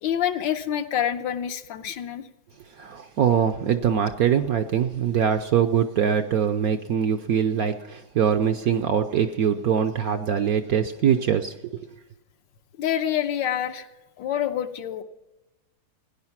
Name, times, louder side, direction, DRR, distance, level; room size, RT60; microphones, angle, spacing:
voice 1, 0.0-2.3 12.8-13.9 14.2-15.0, left 10 dB, 75° left, 8 dB, 1.4 m, -27 dB
voice 2, 2.8-11.9, right 8 dB, 65° right, 7 dB, 0.9 m, -23 dB
17.0 x 10.0 x 5.8 m, 1.0 s
omnidirectional pair, 2.1 m